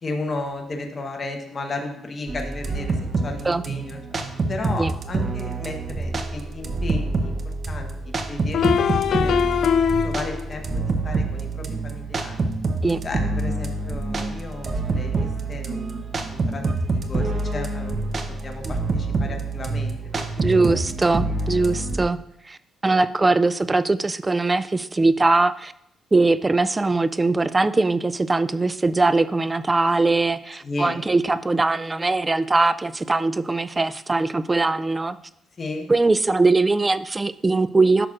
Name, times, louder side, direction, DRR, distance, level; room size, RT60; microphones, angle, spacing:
voice 1, 0.0-3.0 3.2-4.0 4.5-7.3 7.7-9.5 10.0-12.4 13.0-18.1 18.4-20.2 20.5-21.4 30.6-31.0 35.6-35.9, left 2 dB, 35° left, 3 dB, 1.2 m, -34 dB
sound 1, 2.3-22.0, right 3 dB, 45° right, 0.8 m, -27 dB
sound 2, 7.2-7.3 8.5-10.5, left 7 dB, 65° left, 0.3 m, -21 dB
voice 2, 20.4-22.2 22.5-22.6 22.8-25.7 26.1-35.2 35.9-38.1, right 3 dB, 20° right, 15 dB, 0.3 m, -21 dB
11.0 x 6.1 x 2.5 m, 0.74 s
cardioid pair, 90°, 0 cm